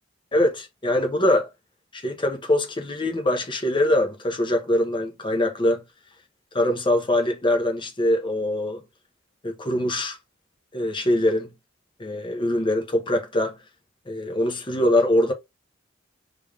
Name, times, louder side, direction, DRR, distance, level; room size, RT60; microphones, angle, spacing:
voice 1, 0.3-1.5 1.9-5.8 6.5-8.8 9.4-10.2 10.7-11.5 12.0-13.6 14.1-15.3, left 1 dB, 25° left, 1.0 m, -23 dB
3.4 x 3.3 x 3.5 m
head